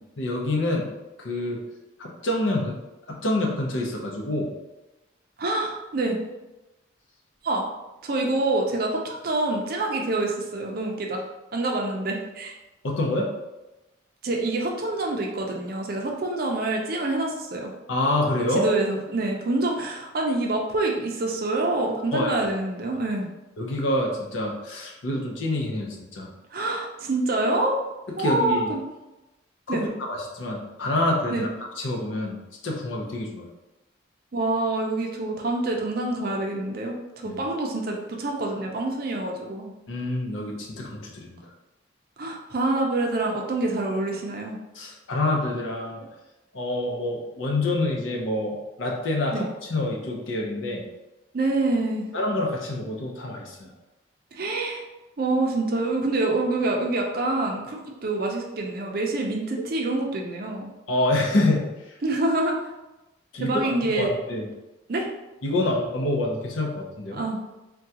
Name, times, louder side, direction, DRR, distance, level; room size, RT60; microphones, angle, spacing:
voice 1, 0.2-0.9 1.2-1.6 2.0-2.8 3.1-4.5 12.8-13.3 17.9-18.7 22.1-22.3 23.6-26.3 28.2-28.7 29.7-31.5 31.8-32.4 32.6-33.5 37.2-37.4 39.9-41.4 44.7-46.0 46.5-50.8 52.1-53.7 60.9-61.7 63.3-64.4 65.4-67.2, left 1 dB, 75° left, -1 dB, 0.6 m, -27 dB
voice 2, 5.4-6.2 7.4-7.6 8.0-11.2 11.5-12.5 14.2-17.7 18.5-23.3 26.5-27.8 28.2-28.8 29.7-29.8 31.3-31.4 34.3-39.7 42.2-44.6 49.3-49.5 51.3-52.1 54.3-54.8 55.2-60.7 62.0-62.6 63.4-64.1 64.9-65.1 67.1-67.4, right 2 dB, 50° right, 1 dB, 0.5 m, -26 dB
3.6 x 2.2 x 2.8 m, 1.0 s
head